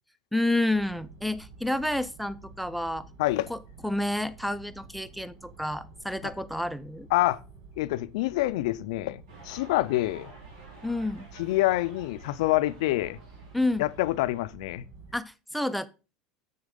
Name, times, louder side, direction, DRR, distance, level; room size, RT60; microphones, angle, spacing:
voice 1, 0.3-3.1 3.5-7.1 10.8-11.3 13.5-13.9 15.1-15.9, left 1 dB, ahead, 0.5 m, -29 dB
sound 1, 0.7-15.2, right 4 dB, 65° right, 1.2 m, -50 dB
voice 2, 3.2-3.5 7.1-7.4 7.8-10.3 11.4-13.2 13.8-14.9, left 17 dB, 80° left, 0.4 m, -26 dB
sound 2, 9.3-14.5, right 2 dB, 90° right, 3.4 m, -52 dB
7.1 x 6.3 x 3.7 m
supercardioid pair, 120°, 3 cm